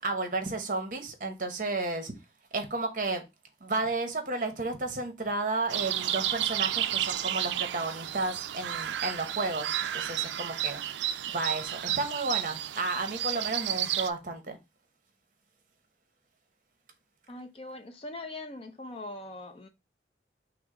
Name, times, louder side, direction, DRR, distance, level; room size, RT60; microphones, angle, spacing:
voice 1, 0.0-2.1 2.5-3.2 3.6-10.8 11.3-14.6, right 3 dB, 45° right, 0.9 m, -32 dB
sound 1, 5.7-14.1, right 12 dB, 75° right, 0.3 m, -32 dB
voice 2, 17.3-19.7, left 2 dB, 30° left, 0.5 m, -41 dB
6.0 x 2.0 x 3.7 m
head